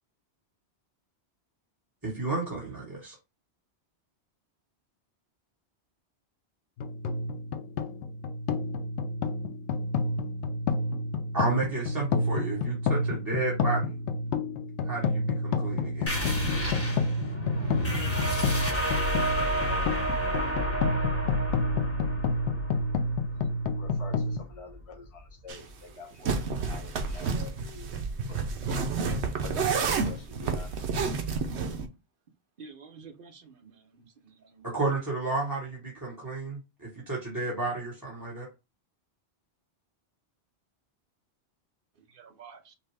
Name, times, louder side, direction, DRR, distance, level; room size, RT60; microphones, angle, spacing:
voice 1, 2.0-3.1 11.3-13.9 14.8-16.2 34.6-38.5, right 3 dB, 20° right, 1.2 m, -32 dB
sound 1, 6.8-24.4, left 3 dB, 90° left, 0.9 m, -29 dB
sound 2, 16.1-25.3, equal, 15° left, 1.1 m, -31 dB
voice 2, 23.7-26.4 26.6-27.9 28.3-28.5 29.4-30.8, left 4 dB, 35° left, 0.9 m, -47 dB
sound 3, 25.5-25.6 26.2-31.9, right 4 dB, 75° right, 1.0 m, -30 dB
voice 3, 32.6-34.8 42.0-42.7, right 5 dB, 55° right, 0.9 m, -50 dB
5.4 x 2.2 x 3.3 m
omnidirectional pair, 1.1 m